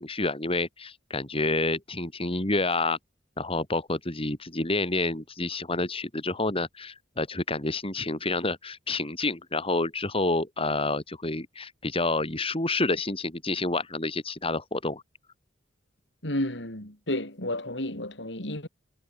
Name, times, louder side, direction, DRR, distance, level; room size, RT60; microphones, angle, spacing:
voice 1, 0.0-3.0 3.4-15.0, left 2 dB, 30° left, 4.7 m, -28 dB
voice 2, 16.2-18.7, left 1 dB, 75° left, 7.4 m, -31 dB
head